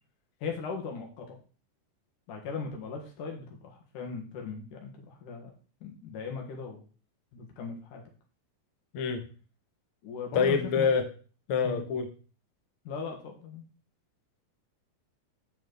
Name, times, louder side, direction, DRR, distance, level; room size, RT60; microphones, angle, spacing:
voice 1, 0.4-1.4 2.3-5.5 5.8-6.8 7.3-8.0 10.0-10.9 11.6-11.8 12.8-13.6, left 5 dB, 65° left, 3.1 m, -38 dB
voice 2, 8.9-9.2 10.3-11.0 11.5-12.1, left 5 dB, 85° left, 1.2 m, -26 dB
9.1 x 6.3 x 4.0 m
omnidirectional pair, 4.1 m